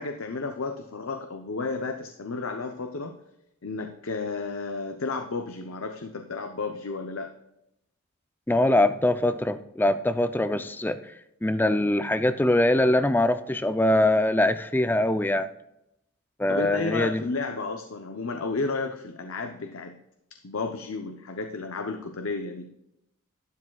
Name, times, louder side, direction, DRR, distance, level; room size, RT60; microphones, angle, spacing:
voice 1, 0.0-3.2 3.6-7.3 16.5-20.0 20.3-22.7, left 3 dB, 65° left, 5 dB, 0.7 m, -32 dB
voice 2, 8.5-11.1 11.4-15.5 16.4-17.2, left 1 dB, 10° left, 10 dB, 0.3 m, -23 dB
12.0 x 9.9 x 2.3 m, 0.82 s
head